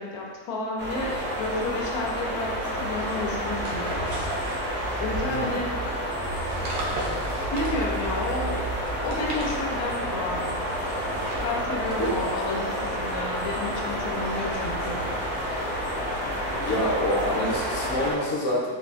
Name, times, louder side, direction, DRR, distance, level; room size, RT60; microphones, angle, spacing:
voice 1, 0.0-3.9 5.0-5.7 7.5-8.6 9.0-10.5 11.4-15.0, left 2 dB, 90° left, -2 dB, 1.1 m, -31 dB
sound 1, 0.8-18.1, equal, 20° right, 0.3 m, -29 dB
sound 2, 2.6-5.3 6.2-8.4 8.9-10.1 10.6-13.5, right 1 dB, 75° right, 1.1 m, -39 dB
voice 2, 16.6-18.7, left 1 dB, 60° left, -5 dB, 0.9 m, -27 dB
4.0 x 2.3 x 2.4 m, 1.5 s
omnidirectional pair, 1.5 m